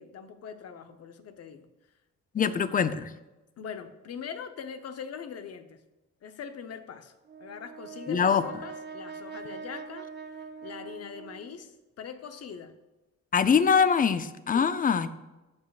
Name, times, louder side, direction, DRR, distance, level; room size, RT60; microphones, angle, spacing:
voice 1, 0.0-1.7 2.4-2.8 3.6-5.8 6.2-7.1 7.4-10.1 10.6-12.8 14.5-14.7, left 7 dB, 55° left, 8 dB, 0.8 m, -42 dB
voice 2, 2.3-3.1 8.1-8.4 13.3-15.1, left 6 dB, 30° left, 12 dB, 0.5 m, -23 dB
Brass instrument, 7.3-11.7, right 5 dB, 35° right, 0.6 m, -43 dB
14.0 x 5.1 x 2.4 m, 1.1 s
cardioid pair, 90°, 30 cm